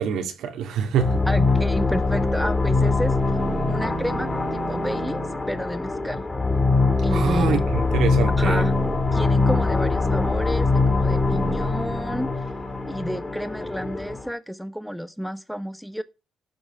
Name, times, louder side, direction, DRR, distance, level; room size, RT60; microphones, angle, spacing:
voice 1, 0.0-1.2 7.1-8.7, right 7 dB, 80° right, 2.2 m, -25 dB
sound 1, 1.0-14.3, left 3 dB, 20° left, 3.0 m, -23 dB
voice 2, 1.3-3.1 3.7-5.2 5.5-6.2 7.0-7.5 8.3-8.7 9.1-12.3 12.9-16.0, equal, ahead, 1.1 m, -30 dB
sound 2, 3.2-5.5, right 7 dB, 60° right, 1.0 m, -35 dB
12.0 x 5.4 x 6.8 m
cardioid pair, 90°, 0 cm